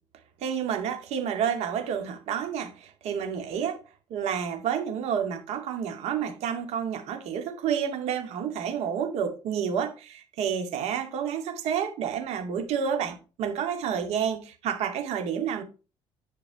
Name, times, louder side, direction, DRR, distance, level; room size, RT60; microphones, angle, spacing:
voice 1, 0.4-3.8 4.1-15.6, right 8 dB, 70° right, 2.3 m, -29 dB
11.0 x 5.2 x 4.8 m
cardioid pair, 155°, 11 cm